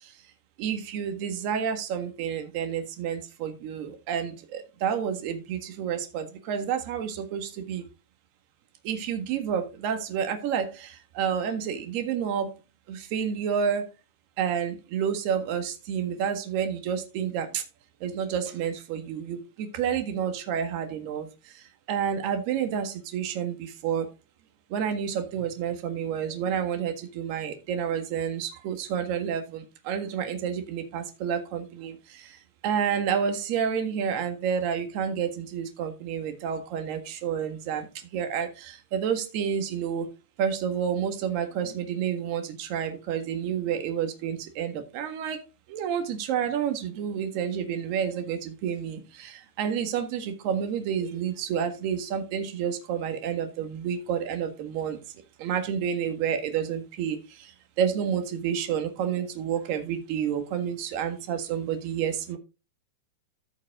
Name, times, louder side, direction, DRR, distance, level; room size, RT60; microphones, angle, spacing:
voice 1, 0.6-7.8 8.8-12.5 12.9-13.8 14.4-17.6 18.0-21.3 21.9-24.1 24.7-31.9 32.6-37.9 38.1-40.1 40.4-45.4 45.7-55.0 55.4-57.2 57.8-62.4, right 8 dB, 45° right, 6 dB, 1.6 m, -29 dB
13.5 x 5.3 x 3.7 m, 0.28 s
supercardioid pair, 160°, 0 cm